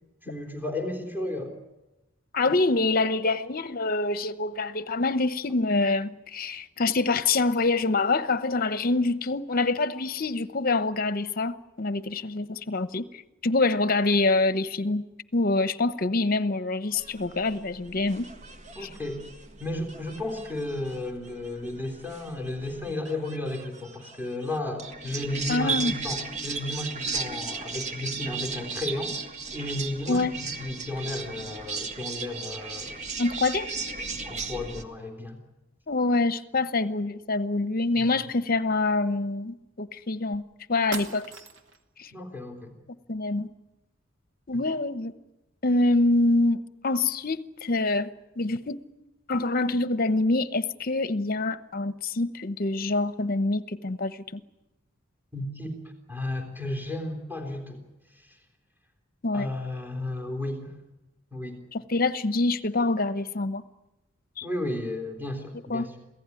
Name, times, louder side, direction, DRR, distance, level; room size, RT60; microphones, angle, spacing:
voice 1, 0.2-1.5 18.7-19.2 19.6-29.1 29.5-33.0 34.2-35.4 38.0-38.2 42.1-42.7 55.3-55.8 56.1-57.8 58.2-58.4 59.3-60.8 61.3-61.6 64.4-66.0, left 1 dB, 10° right, 3.5 m, -33 dB
voice 2, 2.3-13.1 13.4-15.0 15.3-18.3 18.8-18.9 25.5-25.9 30.1-30.3 33.2-33.7 35.9-40.4 40.7-41.3 42.0-42.1 43.1-43.5 44.5-45.1 45.6-48.1 48.4-48.8 49.3-54.4 59.2-59.5 61.7-63.6 64.4-64.5 65.7-65.9, left 2 dB, 45° left, 0.9 m, -25 dB
sound 1, 16.9-34.8, right 4 dB, 35° right, 1.6 m, -36 dB
sound 2, 40.3-40.4 40.9-41.8, right 4 dB, 65° right, 2.4 m, -38 dB
27.5 x 17.0 x 9.8 m
head